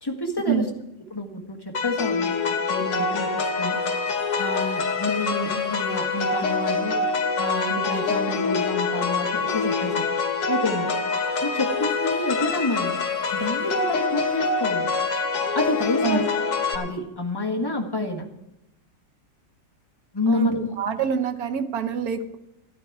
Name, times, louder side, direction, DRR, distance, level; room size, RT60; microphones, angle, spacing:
voice 1, 0.0-0.6 1.1-2.4 2.7-3.3 3.6-3.8 4.4-7.0 7.4-10.1 10.5-10.9 11.4-13.0 13.3-14.9 15.5-16.4 16.7-18.2 20.1-20.7, left 2 dB, 15° left, 0 dB, 1.3 m, -28 dB
sound 1, 1.7-16.7, left 4 dB, 85° left, 2.1 m, -25 dB
voice 2, 20.8-22.4, right 7 dB, 60° right, 8 dB, 1.3 m, -26 dB
15.5 x 11.0 x 4.7 m, 0.89 s
omnidirectional pair, 1.9 m